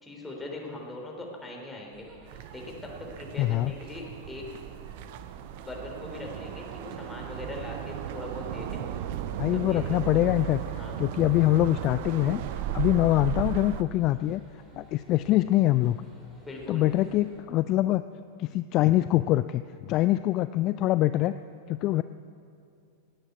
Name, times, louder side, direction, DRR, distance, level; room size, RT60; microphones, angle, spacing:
voice 1, 0.0-2.1 2.5-2.9 3.2-4.4 5.6-8.9 9.5-10.1 10.8-11.0 16.4-16.9, left 2 dB, 10° left, -1 dB, 3.6 m, -40 dB
sound 1, 1.9-17.4, right 1 dB, 10° right, 5.0 m, -54 dB
sound 2, 2.3-13.8, right 11 dB, 50° right, 0.6 m, -36 dB
voice 2, 3.4-3.7 9.4-10.6 11.0-12.4 12.7-14.4 14.7-16.0 16.7-18.0 18.4-21.3 21.7-22.0, left 15 dB, 40° left, 13 dB, 0.3 m, -24 dB
18.0 x 9.0 x 8.1 m, 2.4 s
figure-of-eight pair, 90°, 0 cm